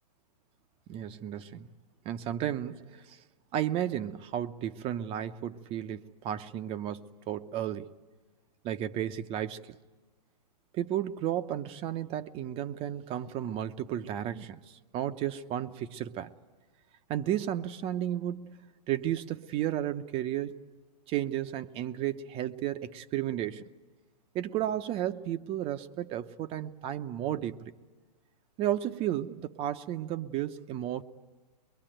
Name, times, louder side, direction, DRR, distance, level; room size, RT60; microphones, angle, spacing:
voice 1, 0.9-1.7 2.0-3.2 3.5-7.9 8.6-9.8 10.7-16.3 17.1-20.6 21.1-23.7 24.3-27.7 28.6-31.0, right 11 dB, 25° right, 10 dB, 0.8 m, -33 dB
23.5 x 22.5 x 9.0 m, 1.3 s
hypercardioid pair, 135°, 21 cm